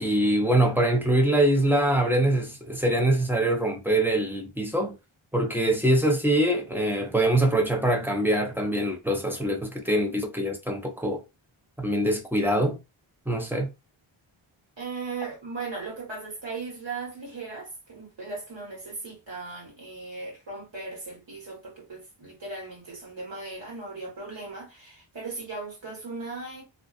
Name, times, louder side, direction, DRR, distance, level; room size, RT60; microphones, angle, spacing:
voice 1, 0.0-5.0 5.3-11.2 11.8-12.8 13.3-13.7, right 1 dB, 5° right, 0.5 m, -24 dB
voice 2, 13.2-13.7 14.8-26.6, right 3 dB, 65° right, 1.4 m, -38 dB
2.4 x 2.3 x 2.3 m
wide cardioid pair, 85°, 49 cm